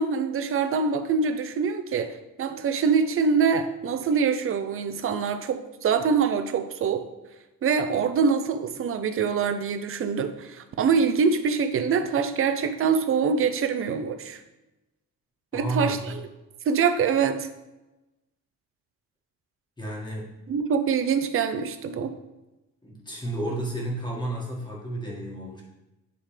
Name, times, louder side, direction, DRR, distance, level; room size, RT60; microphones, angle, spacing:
voice 1, 0.0-7.0 7.6-14.4 15.5-16.3 16.7-17.5 20.5-22.1, right 5 dB, 40° right, 9 dB, 0.6 m, -24 dB
voice 2, 15.5-16.0 19.8-20.3 22.8-25.6, right 1 dB, 15° left, -3 dB, 1.8 m, -31 dB
10.0 x 3.7 x 3.3 m, 1.0 s
cardioid pair, 145°, 32 cm